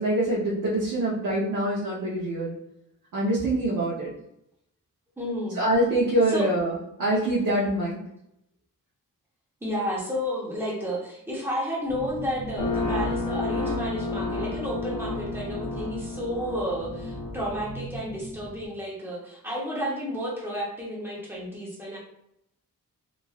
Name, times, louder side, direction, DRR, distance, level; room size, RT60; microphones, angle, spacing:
voice 1, 0.0-2.5 3.1-4.1 5.5-8.0, right 1 dB, 65° right, -6 dB, 0.8 m, -25 dB
voice 2, 5.2-5.6 6.3-6.5 9.6-22.0, equal, 5° right, -5 dB, 0.9 m, -31 dB
sound 1, 11.9-18.7, right 1 dB, 25° right, 1.1 m, -40 dB
sound 2, 12.6-17.6, left 3 dB, 85° left, 0.8 m, -31 dB
3.1 x 2.5 x 2.4 m, 0.79 s
wide cardioid pair, 145°, 33 cm